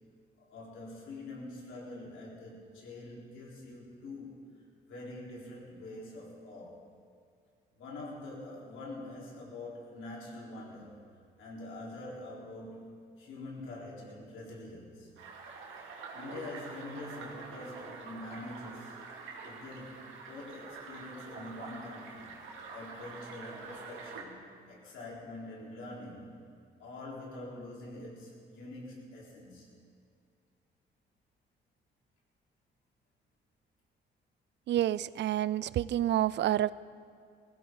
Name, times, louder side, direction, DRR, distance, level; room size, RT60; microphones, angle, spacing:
voice 1, 0.4-6.9 7.8-11.0 11.4-15.1 16.1-19.0 19.4-22.3 22.7-26.4 26.8-29.7, left 2 dB, 80° left, -3 dB, 4.3 m, -45 dB
sound 1, 15.2-24.2, right 4 dB, 85° right, 2.5 m, -46 dB
voice 2, 34.7-36.7, right 12 dB, 65° right, 18 dB, 0.4 m, -28 dB
20.5 x 16.0 x 4.0 m, 2.3 s
cardioid pair, 90°, 20 cm